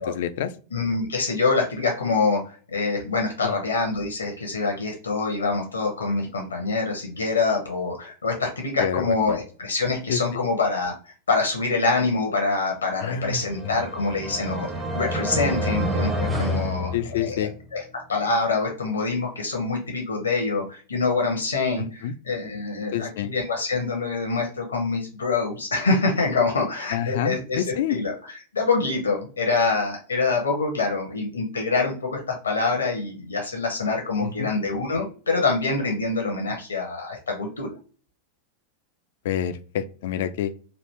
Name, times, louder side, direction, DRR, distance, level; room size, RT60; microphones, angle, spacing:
voice 1, 0.1-0.5 3.4-3.6 8.8-9.0 10.1-10.4 13.0-13.7 16.9-17.5 21.8-22.1 22.9-23.3 26.9-28.0 34.2-34.5 39.2-40.5, left 9 dB, 55° left, 12 dB, 0.3 m, -28 dB
voice 2, 0.7-27.6 27.9-37.7, left 3 dB, 70° left, 1 dB, 0.7 m, -25 dB
sound 1, 13.2-17.6, equal, 15° right, 0.7 m, -28 dB
3.2 x 2.5 x 3.2 m, 0.40 s
figure-of-eight pair, 90°, 0 cm